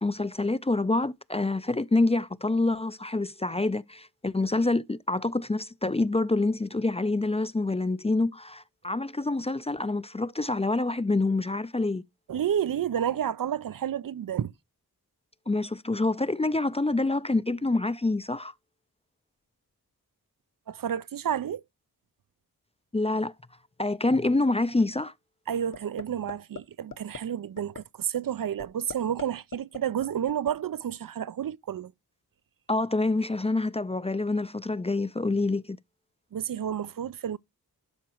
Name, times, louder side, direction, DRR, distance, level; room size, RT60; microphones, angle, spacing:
voice 1, 0.0-12.0 15.5-18.5 22.9-23.3 23.8-25.1 32.7-35.8, left 2 dB, 15° left, 0.4 m, -27 dB
voice 2, 12.3-14.5 20.7-21.6 25.5-31.9 36.3-37.4, right 9 dB, 65° right, 0.5 m, -30 dB
sound 1, 25.7-26.0 26.3-26.6 26.9-27.2 27.6-27.8 28.1-28.2 28.6-29.2 29.5-30.5, left 6 dB, 60° left, 1.0 m, -38 dB
12.0 x 5.1 x 2.9 m
wide cardioid pair, 65°, 37 cm